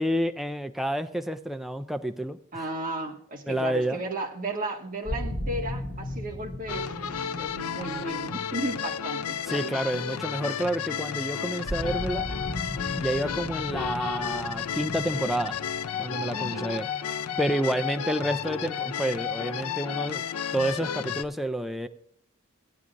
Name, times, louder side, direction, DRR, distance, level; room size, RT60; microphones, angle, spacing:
voice 1, 0.0-2.7 3.5-4.0 9.5-12.3 13.0-15.6 16.0-16.9 17.4-20.2 20.5-21.9, right 1 dB, ahead, 7 dB, 0.3 m, -29 dB
voice 2, 2.5-9.8 10.2-10.3 16.3-16.7, right 1 dB, 40° right, -1 dB, 1.6 m, -34 dB
sound 1, 5.1-10.0 11.7-17.3, left 1 dB, 25° left, 2.6 m, -37 dB
sound 2, 6.7-21.2, left 8 dB, 85° left, 0.5 m, -32 dB
16.5 x 9.5 x 2.5 m, 0.66 s
head